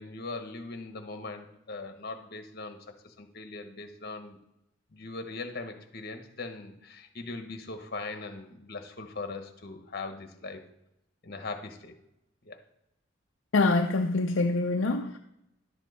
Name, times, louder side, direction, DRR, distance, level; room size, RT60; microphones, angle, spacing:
voice 1, 0.0-2.8 3.0-4.4 4.9-10.6 11.2-11.9 12.4-12.6, left 3 dB, 55° left, 6 dB, 1.3 m, -40 dB
voice 2, 13.5-15.2, left 3 dB, 70° left, 3 dB, 0.6 m, -25 dB
11.5 x 7.2 x 4.2 m, 0.84 s
head